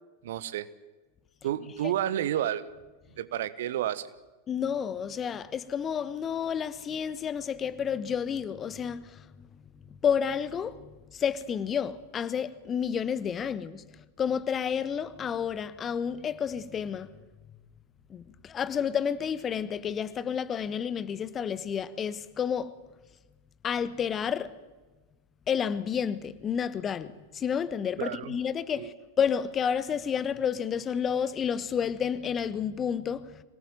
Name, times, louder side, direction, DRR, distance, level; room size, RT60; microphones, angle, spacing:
voice 1, 0.2-0.7 1.4-2.7 3.2-4.1 28.0-28.4 28.8-28.9, right 11 dB, 55° right, 1.2 m, -30 dB
voice 2, 4.5-9.3 10.0-10.9 11.1-13.8 14.2-17.1 18.1-22.7 23.6-24.5 25.5-33.4, left 7 dB, 25° left, 1.2 m, -30 dB
25.0 x 19.0 x 9.1 m
figure-of-eight pair, 90°, 0 cm